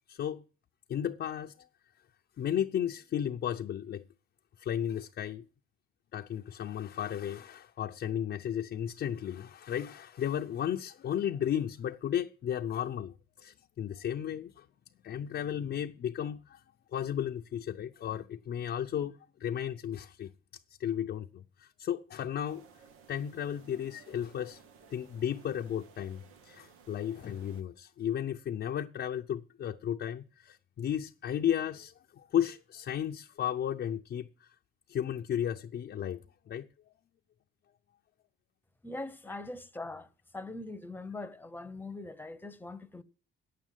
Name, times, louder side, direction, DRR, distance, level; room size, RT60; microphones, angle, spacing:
voice 1, 0.1-0.4 0.9-1.5 2.4-4.0 4.6-5.5 6.1-14.7 15.0-16.6 16.9-20.3 20.8-22.6 23.1-24.6 24.9-34.5 34.9-36.7, left 10 dB, 55° left, 0.6 m, -34 dB
sound 1, 22.4-27.6, right 6 dB, 90° right, 1.1 m, -58 dB
voice 2, 38.8-40.1 40.3-43.0, left 2 dB, 10° left, 0.9 m, -42 dB
8.8 x 7.5 x 9.1 m
cardioid pair, 105°, 21 cm